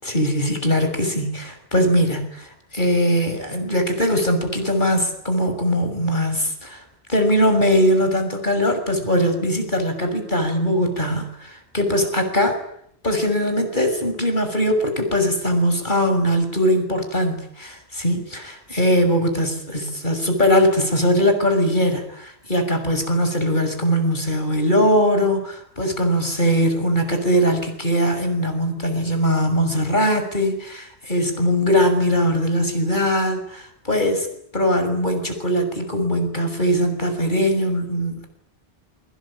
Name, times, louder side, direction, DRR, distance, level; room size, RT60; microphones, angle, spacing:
voice 1, 0.0-6.8 7.1-12.6 13.0-34.3 34.5-38.3, equal, 50° left, 6 dB, 6.5 m, -21 dB
28.0 x 23.5 x 8.8 m, 0.71 s
omnidirectional pair, 1.1 m